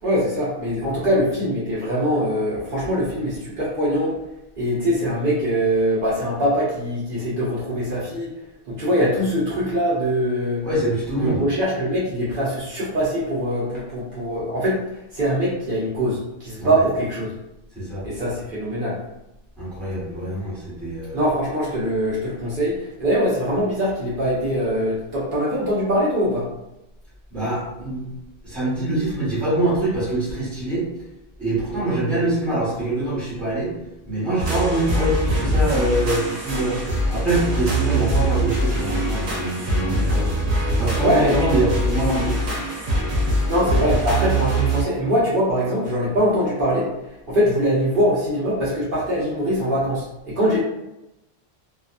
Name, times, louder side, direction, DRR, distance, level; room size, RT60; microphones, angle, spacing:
voice 1, 0.0-4.1 4.6-8.3 8.7-10.6 11.2-14.8 15.1-17.3 18.0-19.0 21.1-26.5 41.0-41.6 43.5-46.9 47.3-50.6, equal, 60° right, -8 dB, 0.9 m, -22 dB
voice 2, 10.6-11.4 16.6-16.7 17.7-18.0 19.6-21.2 27.3-28.0 28.4-30.9 31.4-33.7 34.0-36.7 37.1-40.3 40.8-42.3, right 1 dB, ahead, -9 dB, 1.1 m, -24 dB
sound 1, 34.4-44.8, right 1 dB, 80° right, 1.0 m, -23 dB
2.7 x 2.3 x 2.4 m, 0.89 s
omnidirectional pair, 1.1 m